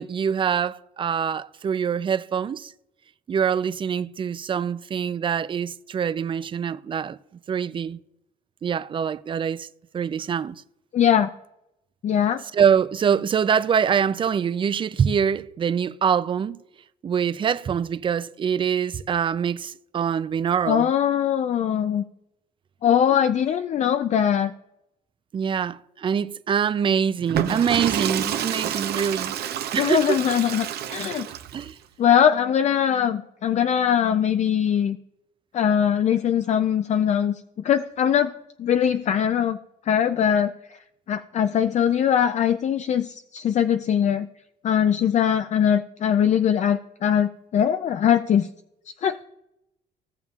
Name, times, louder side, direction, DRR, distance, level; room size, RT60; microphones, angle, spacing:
voice 1, 0.0-2.7 3.3-7.2 7.5-8.0 8.6-9.7 9.9-10.6 12.5-16.6 17.0-20.9 25.3-29.4 29.7-30.2 31.3-31.8, right 7 dB, 30° right, 0.4 m, -24 dB
voice 2, 10.9-11.3 12.0-12.4 20.7-22.0 22.8-24.5 29.8-31.3 32.0-35.0 35.5-38.3 38.6-39.6 39.9-40.5 41.1-44.3 44.6-48.5 49.0-49.2, left 9 dB, 45° left, 0.4 m, -21 dB
Water / Toilet flush, 27.2-31.7, right 10 dB, 70° right, 0.8 m, -28 dB
16.5 x 7.1 x 2.4 m
cardioid pair, 105°, 17 cm